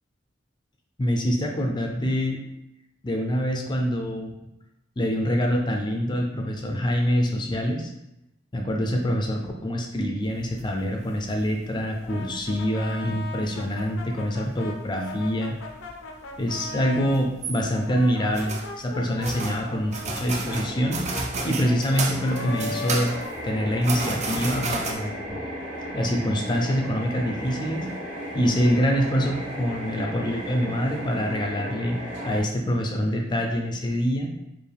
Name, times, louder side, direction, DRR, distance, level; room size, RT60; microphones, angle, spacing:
voice 1, 1.0-2.4 3.0-4.3 5.0-7.9 8.5-15.6 16.4-21.0 21.4-23.1 23.4-25.4 25.9-27.9 28.3-32.0 32.2-34.3, equal, 25° left, 2 dB, 0.4 m, -25 dB
sound 1, 10.2-12.0 12.3-13.4 13.8-15.9 16.2-23.4 23.8-24.9, right 3 dB, 35° right, 0.4 m, -32 dB
Brass instrument, 12.1-17.2 17.7-24.0, left 2 dB, 85° left, 0.6 m, -38 dB
sound 2, 20.4-32.4, equal, 65° right, 1.4 m, -35 dB
4.5 x 2.5 x 3.4 m, 0.88 s
head